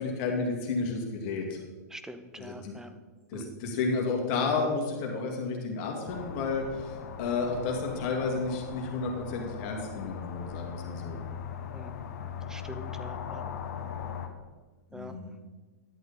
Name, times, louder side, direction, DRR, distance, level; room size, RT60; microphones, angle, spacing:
voice 1, 0.0-1.6 2.4-2.7 3.3-11.2 14.9-15.3, left 4 dB, 45° left, 1 dB, 2.3 m, -31 dB
voice 2, 1.9-3.0 3.3-3.6 11.7-12.0 12.5-13.5 14.9-15.3, right 1 dB, 5° right, 10 dB, 0.7 m, -45 dB
sound 1, 6.1-14.3, left 7 dB, 65° left, 1.3 m, -39 dB
11.0 x 7.9 x 4.1 m, 1.4 s
hypercardioid pair, 130°, 9 cm